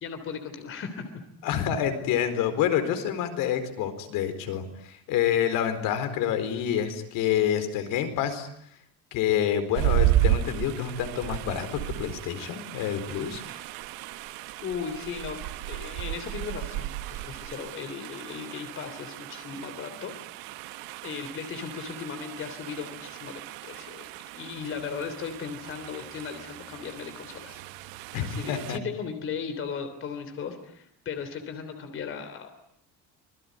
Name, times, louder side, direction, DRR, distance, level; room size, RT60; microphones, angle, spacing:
voice 1, 0.0-1.1 13.5-13.7 14.6-15.4 15.7-20.1 21.0-27.6 28.2-32.5, left 6 dB, 35° left, 8 dB, 3.4 m, -37 dB
voice 2, 1.4-8.5 9.1-13.4 28.1-28.8, left 9 dB, 65° left, 9 dB, 4.4 m, -27 dB
sound 1, 9.7-28.8, right 14 dB, 90° right, 1.3 m, -33 dB
26.5 x 21.5 x 9.4 m, 0.71 s
cardioid pair, 170°, 35 cm